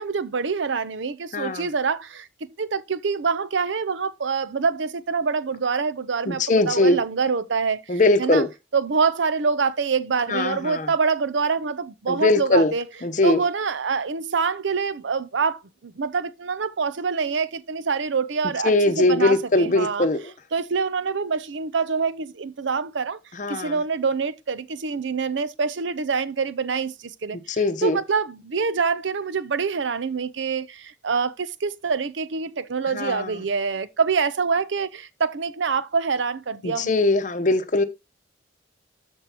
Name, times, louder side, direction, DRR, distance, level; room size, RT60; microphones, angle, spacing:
voice 1, 0.0-2.3 2.6-8.4 8.7-12.8 13.2-20.1 20.5-23.2 23.5-36.9, right 5 dB, 80° right, 0.6 m, -25 dB
voice 2, 1.3-1.7 6.3-7.0 7.9-8.5 10.3-10.9 12.1-12.7 13.0-13.4 18.6-20.3 23.3-23.8 27.6-28.0 32.9-33.4 36.6-37.8, left 2 dB, 40° left, 0.8 m, -21 dB
13.0 x 4.6 x 2.9 m
head